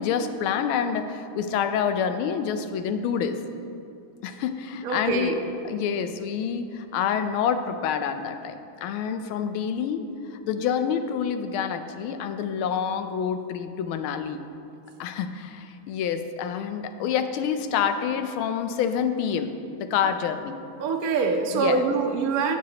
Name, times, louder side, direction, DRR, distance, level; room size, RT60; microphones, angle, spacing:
voice 1, 0.0-3.4 4.2-5.4 5.6-10.0 10.3-14.4 15.0-20.6 21.5-21.8, left 7 dB, 80° left, 9 dB, 1.4 m, -27 dB
voice 2, 4.8-5.4 20.8-22.6, right 4 dB, 65° right, 3 dB, 0.9 m, -24 dB
16.5 x 6.2 x 2.8 m, 2.7 s
omnidirectional pair, 2.4 m